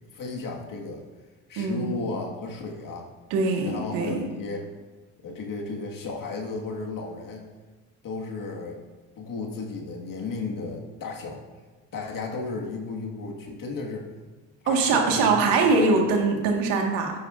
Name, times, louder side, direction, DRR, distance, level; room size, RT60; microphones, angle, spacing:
voice 1, 0.1-1.1 1.5-3.1 3.6-4.6 5.2-7.5 8.0-8.8 9.2-11.4 11.9-14.1 14.6-15.3, left 3 dB, 50° left, -1 dB, 1.9 m, -34 dB
voice 2, 1.6-2.0 3.3-4.2 14.7-17.1, right 3 dB, 85° right, 1 dB, 1.8 m, -22 dB
12.5 x 8.5 x 2.6 m, 1.3 s
supercardioid pair, 75°, 41 cm